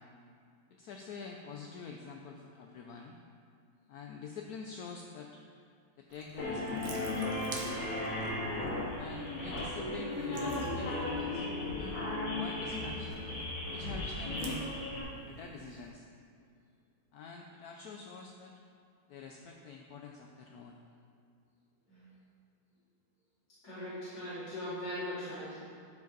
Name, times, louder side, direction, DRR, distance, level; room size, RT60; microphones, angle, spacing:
voice 1, 0.7-3.1 3.9-5.4 6.0-8.0 8.9-11.5 11.8-13.2 13.7-14.7 15.2-16.1 17.1-18.5 19.1-20.8, left 5 dB, 75° left, 2 dB, 0.9 m, -46 dB
Water tap faucet / Sink (filling or washing) / Drip, 6.1-15.9, right 2 dB, 75° right, 1.7 m, -48 dB
sound 1, 6.4-15.0, left 2 dB, 90° left, 2.6 m, -36 dB
voice 2, 23.6-25.6, left 1 dB, 55° left, -14 dB, 2.8 m, -40 dB
12.5 x 5.1 x 4.0 m, 2.3 s
omnidirectional pair, 2.2 m